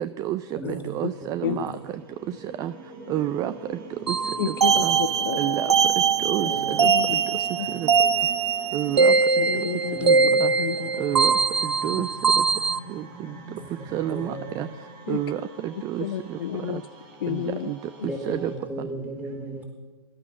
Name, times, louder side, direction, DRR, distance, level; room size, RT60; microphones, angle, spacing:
voice 1, 0.0-1.7 2.6-2.7 3.1-3.5 4.1-4.2 4.5-4.6 4.8-5.0 5.4-5.7 6.2-6.9 7.7-7.9 8.7-9.1 10.0-10.1 10.4-10.5 11.0-11.3 11.6-12.1 12.9-13.3 13.9-14.7 15.1-16.4 17.3-17.8 18.3-18.5, right 12 dB, 25° right, 13 dB, 0.5 m, -29 dB
voice 2, 0.6-0.9 1.2-1.8 4.7-4.8 6.4-7.1 7.7-8.2 9.9-10.4 12.2-12.3 13.6-14.5 18.0-19.6, right 1 dB, 10° right, 1 dB, 4.2 m, -36 dB
sound 1, 0.8-18.6, right 3 dB, 50° right, 4.8 m, -44 dB
sound 2, 4.1-12.8, right 5 dB, 80° right, 0.8 m, -22 dB
voice 3, 4.4-5.5 6.8-7.2 9.4-10.2 10.6-10.9 12.0-12.1 15.1-15.2 16.0-16.8 17.2-17.7, left 11 dB, 60° left, 12 dB, 0.6 m, -30 dB
17.5 x 12.5 x 6.1 m, 1.3 s
figure-of-eight pair, 115°, 14 cm